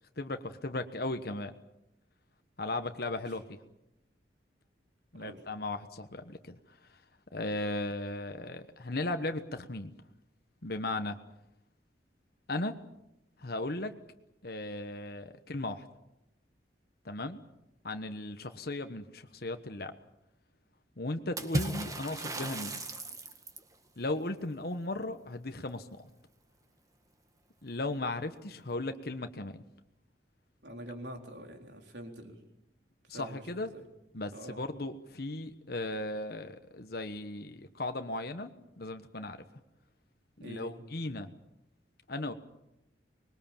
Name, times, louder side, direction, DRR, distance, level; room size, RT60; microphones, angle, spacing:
voice 1, 0.2-1.5 2.6-3.6 5.1-6.6 7.3-9.9 10.6-11.2 12.5-12.7 13.4-13.9 14.4-15.9 17.0-17.4 17.8-19.9 21.0-22.8 24.0-26.0 27.6-29.6 33.1-33.7 34.1-38.5 38.8-39.4 40.4-41.3 42.1-42.3, left 2 dB, 55° left, 7 dB, 1.2 m, -36 dB
Water / Splash splatter, 21.4-23.7, right 1 dB, 20° right, 1.8 m, -35 dB
voice 2, 30.6-32.4 33.1-33.8 34.3-34.6 40.4-40.8, right 1 dB, 75° right, 3 dB, 4.1 m, -45 dB
25.0 x 21.5 x 7.3 m, 0.88 s
head